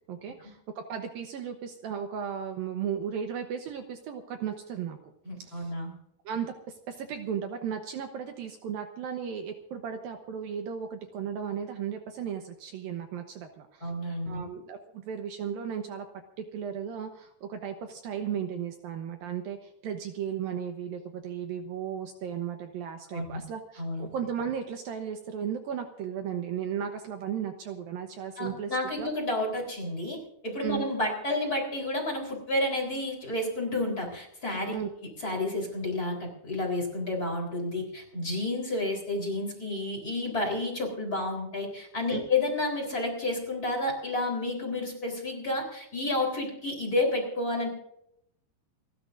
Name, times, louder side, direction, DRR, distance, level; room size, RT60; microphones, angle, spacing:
voice 1, 0.1-5.0 5.4-5.7 6.3-6.5 6.9-13.9 14.3-16.1 16.4-29.1 30.6-30.8 34.7-34.9 42.1-42.3, right 8 dB, 70° right, 5 dB, 2.6 m, -35 dB
voice 2, 5.2-5.9 13.8-14.5 23.1-23.4 23.8-24.1 28.4-34.8 35.2-47.7, left 2 dB, 20° left, 0 dB, 4.1 m, -30 dB
29.0 x 12.5 x 2.6 m, 0.76 s
omnidirectional pair, 4.7 m